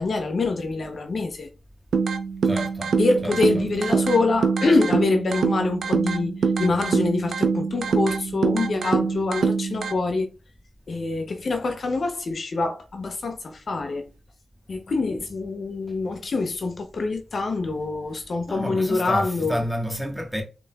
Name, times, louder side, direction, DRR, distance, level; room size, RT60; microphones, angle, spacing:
voice 1, 0.0-1.5 3.0-10.3 10.9-14.1 14.7-19.6, left 3 dB, 65° left, 0.6 m, -25 dB
sound 1, 1.9-9.9, right 5 dB, 75° right, 0.4 m, -24 dB
voice 2, 2.4-2.9 3.2-3.6 15.9-16.0 18.5-20.4, equal, 5° right, 1.4 m, -30 dB
3.8 x 3.7 x 2.3 m
cardioid pair, 50°, 0 cm